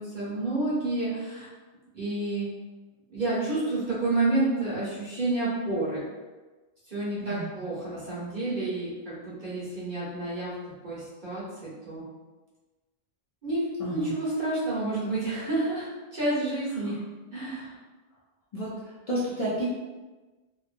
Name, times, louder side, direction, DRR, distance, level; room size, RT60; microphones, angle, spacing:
voice 1, 0.0-1.5 1.9-2.4 3.1-6.0 6.9-10.5 10.8-12.0 13.4-17.0 17.3-17.7, right 2 dB, 50° right, -9 dB, 1.2 m, -29 dB
voice 2, 19.1-19.6, right 1 dB, 45° left, -8 dB, 0.5 m, -30 dB
2.9 x 2.2 x 2.5 m, 1.2 s
omnidirectional pair, 1.0 m